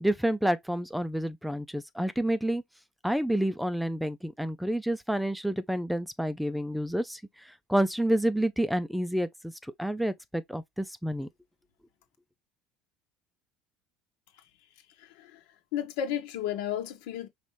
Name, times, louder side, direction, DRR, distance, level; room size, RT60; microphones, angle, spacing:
voice 1, 0.0-2.6 3.0-11.3, right 1 dB, ahead, 0.4 m, -29 dB
voice 2, 15.0-15.4 15.7-17.3, left 10 dB, 85° left, 1.4 m, -33 dB
5.4 x 3.0 x 3.2 m
cardioid pair, 150°, 0 cm